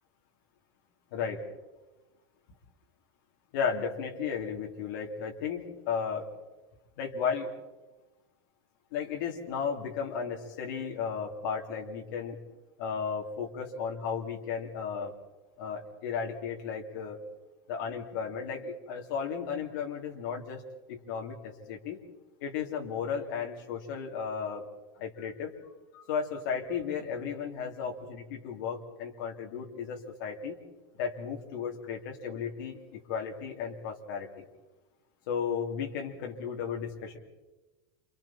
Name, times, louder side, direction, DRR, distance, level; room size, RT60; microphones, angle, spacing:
voice 1, 1.1-1.4 3.5-6.3 7.0-7.5 8.9-12.4 12.8-15.1 15.6-17.2 17.7-20.6 20.9-22.0 22.4-24.7 24.9-30.6 30.9-34.4 35.3-37.2, left 6 dB, 50° left, 1 dB, 3.4 m, -34 dB
28.5 x 27.5 x 4.5 m, 1.1 s
supercardioid pair, 175°, 13 cm